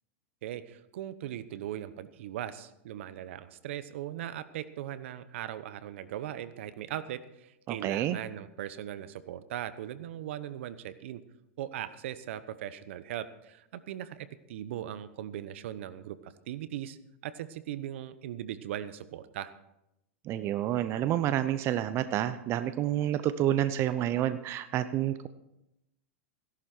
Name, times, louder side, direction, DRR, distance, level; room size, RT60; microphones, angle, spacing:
voice 1, 0.4-11.2 11.6-17.0 17.2-19.5, right 11 dB, 65° right, 14 dB, 0.9 m, -39 dB
voice 2, 7.7-8.2 20.2-25.3, right 12 dB, 40° right, 13 dB, 0.7 m, -29 dB
17.0 x 11.5 x 4.5 m, 0.87 s
hypercardioid pair, 110°, 7 cm